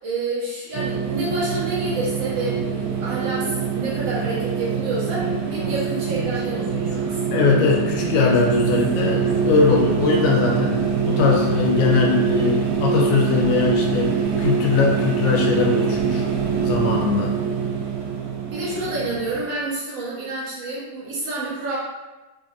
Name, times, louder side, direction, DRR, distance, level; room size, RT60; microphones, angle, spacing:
voice 1, 0.0-7.2 18.5-21.8, right 2 dB, 65° right, -9 dB, 2.0 m, -29 dB
sound 1, 0.7-19.4, right 6 dB, 85° right, 2.0 m, -24 dB
Human voice, 5.1-10.3, equal, 55° left, 1.9 m, -36 dB
voice 2, 7.3-16.2 16.7-17.4, left 5 dB, 80° left, -1 dB, 1.9 m, -21 dB
5.1 x 2.5 x 2.5 m, 1.1 s
omnidirectional pair, 3.3 m